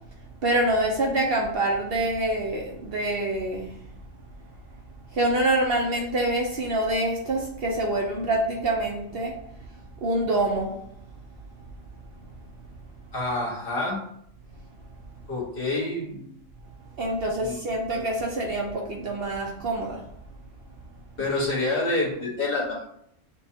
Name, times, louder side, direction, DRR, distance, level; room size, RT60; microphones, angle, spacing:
voice 1, 0.4-3.8 5.1-9.4 10.0-10.8 17.0-20.0, right 1 dB, 55° right, 0 dB, 0.8 m, -26 dB
voice 2, 13.1-14.0 15.3-16.3 17.4-17.6 21.2-22.9, left 2 dB, 50° left, -4 dB, 1.3 m, -27 dB
6.9 x 2.3 x 2.7 m, 0.70 s
omnidirectional pair, 1.3 m